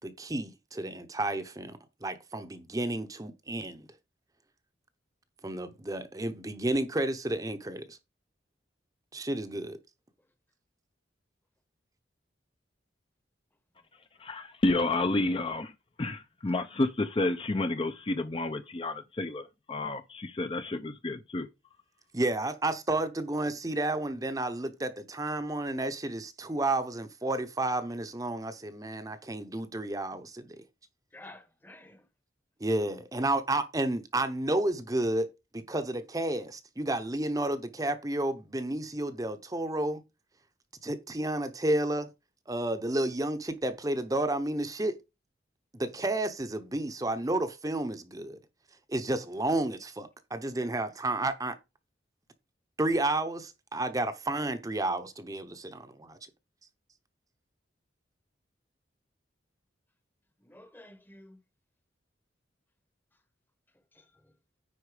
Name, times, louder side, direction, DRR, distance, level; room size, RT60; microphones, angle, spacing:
voice 1, 0.0-3.9 5.4-8.0 9.1-9.8 22.1-30.6 32.6-35.3 35.5-40.0 40.8-42.1 42.5-44.9 45.8-48.4 48.9-51.6 52.8-55.5, right 2 dB, 20° right, 0.7 m, -31 dB
voice 2, 14.3-15.7 16.0-19.4 19.7-21.5, left 2 dB, 30° left, 0.5 m, -30 dB
voice 3, 31.1-32.0 60.4-61.4 63.9-64.3, left 1 dB, 10° left, 0.9 m, -51 dB
9.6 x 4.2 x 4.9 m
head